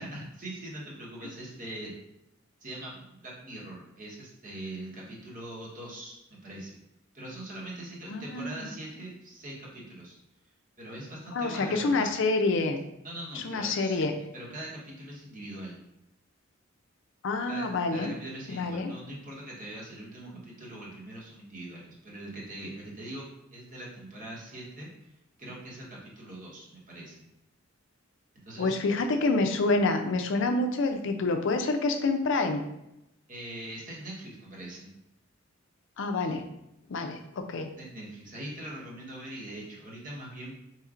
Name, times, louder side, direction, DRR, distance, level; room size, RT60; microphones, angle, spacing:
voice 1, 0.0-1.9 2.6-6.8 7.1-10.2 10.8-12.1 13.0-14.0 14.3-15.8 17.5-24.9 25.4-27.2 28.5-28.8 33.3-34.9 37.8-40.6, right 1 dB, 45° right, -4 dB, 1.1 m, -42 dB
voice 2, 8.1-8.7 11.3-12.8 13.4-14.1 17.2-18.1 18.5-18.9 28.6-32.6 36.0-36.4 36.9-37.7, left 3 dB, 65° left, 6 dB, 0.5 m, -27 dB
4.3 x 3.1 x 2.5 m, 0.86 s
head